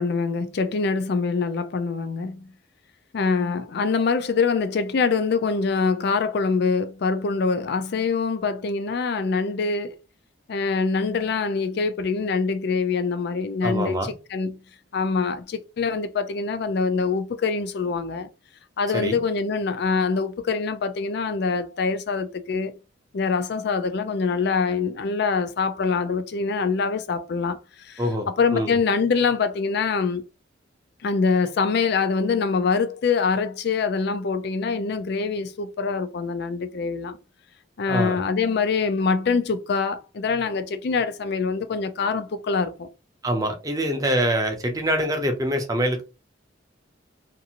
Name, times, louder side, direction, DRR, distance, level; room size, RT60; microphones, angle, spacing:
voice 1, 0.0-2.5 3.1-10.0 10.5-14.6 14.9-18.3 18.8-22.7 23.1-30.2 31.0-37.2 37.8-42.9, left 4 dB, 60° left, 0.4 m, -24 dB
voice 2, 13.6-14.1 18.9-19.2 28.0-28.3 28.5-28.8 37.9-38.2 43.2-46.0, equal, 20° right, 0.6 m, -24 dB
2.6 x 2.5 x 2.8 m
head